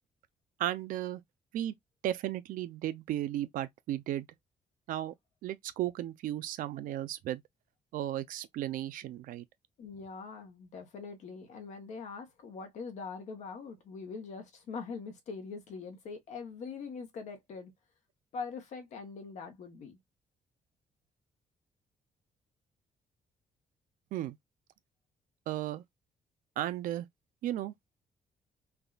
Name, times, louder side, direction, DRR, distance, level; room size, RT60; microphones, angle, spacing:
voice 1, 0.6-1.2 1.5-1.7 2.0-4.3 4.9-5.1 5.4-7.4 7.9-9.4 24.1-24.4 25.5-25.8 26.6-27.1 27.4-27.7, right 13 dB, 85° right, 0.4 m, -34 dB
voice 2, 9.8-17.7 18.3-20.0, left 5 dB, 60° left, 1.0 m, -43 dB
3.4 x 2.3 x 2.3 m
cardioid pair, 170°, 14 cm